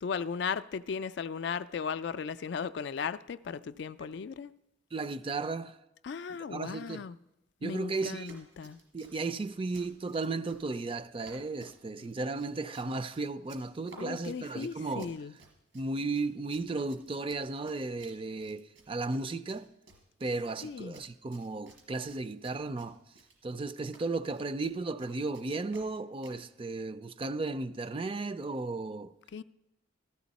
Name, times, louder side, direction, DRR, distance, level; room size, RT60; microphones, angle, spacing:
voice 1, 0.0-4.5 6.0-7.2 7.6-8.8 14.0-15.3 20.6-21.0 29.3-29.4, left 6 dB, 60° left, 0.3 m, -36 dB
voice 2, 4.9-5.8 6.5-7.1 7.6-8.4 8.9-15.1 15.7-19.7 20.2-23.0 23.4-29.1, right 3 dB, 30° right, 0.4 m, -35 dB
Run, 7.8-26.4, right 3 dB, 85° right, 3.9 m, -58 dB
14.5 x 13.5 x 4.1 m
head